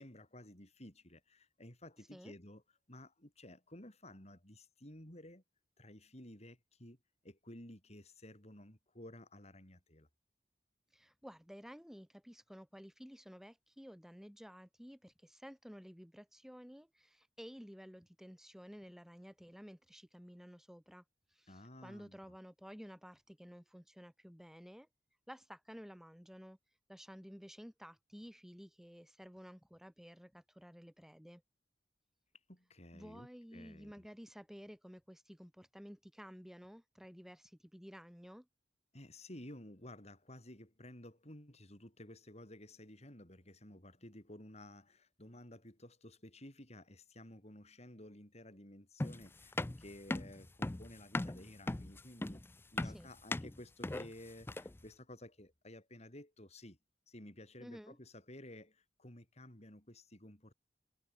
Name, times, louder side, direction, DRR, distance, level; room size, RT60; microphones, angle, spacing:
voice 1, 0.0-2.6 2.9-5.4 5.8-7.0 7.2-10.1 21.5-22.4 32.5-34.1 38.9-52.4 52.7-56.8 57.1-60.5, left 1 dB, 40° left, 7.9 m, -54 dB
voice 2, 10.9-21.0 21.3-24.9 25.3-26.6 26.9-31.4 32.9-38.5 52.8-53.1 57.6-58.0, equal, ahead, 5.0 m, -53 dB
sound 1, 49.0-54.8, left 2 dB, 15° left, 0.4 m, -39 dB
head